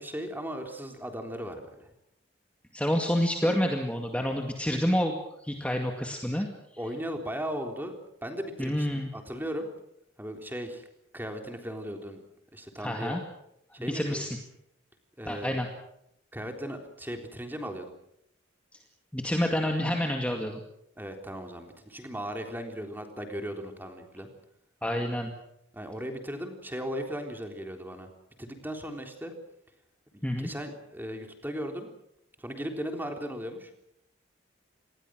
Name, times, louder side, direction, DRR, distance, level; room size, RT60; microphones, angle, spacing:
voice 1, 0.0-1.9 6.3-6.4 6.8-7.9 8.2-8.9 9.1-9.7 10.2-10.8 11.1-12.2 12.5-13.2 13.7-14.3 15.2-15.6 16.3-17.9 21.0-24.3 25.7-28.1 28.4-29.3 30.1-31.9 32.4-33.7, equal, 10° right, 4 dB, 3.7 m, -37 dB
voice 2, 2.7-6.5 8.6-9.1 12.8-13.2 13.8-14.3 15.3-15.7 19.1-20.6 24.8-25.3 30.2-30.5, equal, 5° left, 2 dB, 2.2 m, -28 dB
28.0 x 20.5 x 6.4 m, 0.78 s
head